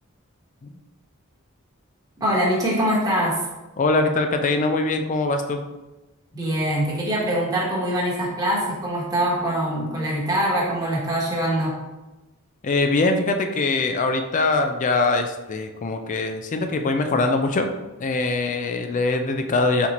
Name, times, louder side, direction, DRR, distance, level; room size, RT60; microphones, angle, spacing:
voice 1, 2.2-3.4 6.3-11.7, right 1 dB, 15° right, -6 dB, 1.2 m, -23 dB
voice 2, 3.8-5.6 12.6-17.7 18.0-19.9, left 3 dB, 35° left, 6 dB, 0.3 m, -22 dB
4.2 x 3.9 x 2.9 m, 1.1 s
head